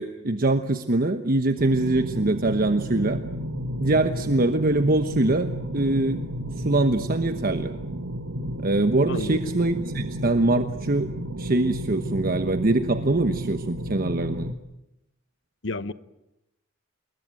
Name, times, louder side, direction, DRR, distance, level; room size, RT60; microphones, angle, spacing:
voice 1, 0.0-3.2 3.8-6.2 6.6-7.7 8.6-11.1 11.4-14.5, right 2 dB, 45° right, 9 dB, 1.1 m, -23 dB
sound 1, 1.6-14.5, right 1 dB, 75° right, 1.7 m, -32 dB
voice 2, 9.1-9.6 15.6-15.9, left 2 dB, 65° left, 15 dB, 1.1 m, -31 dB
28.0 x 21.5 x 9.1 m, 0.90 s
head